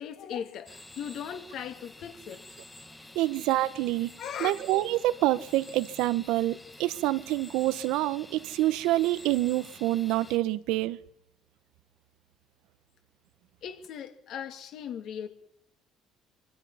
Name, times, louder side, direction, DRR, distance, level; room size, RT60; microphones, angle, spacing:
voice 1, 0.0-2.4 4.2-4.5 13.6-15.3, left 8 dB, 55° left, 2.6 m, -38 dB
sound 1, 0.7-10.4, left 2 dB, 10° left, 1.1 m, -49 dB
voice 2, 3.1-4.1 4.4-11.0, right 16 dB, 85° right, 1.0 m, -27 dB
25.5 x 24.5 x 5.7 m
cardioid pair, 165°, 0 cm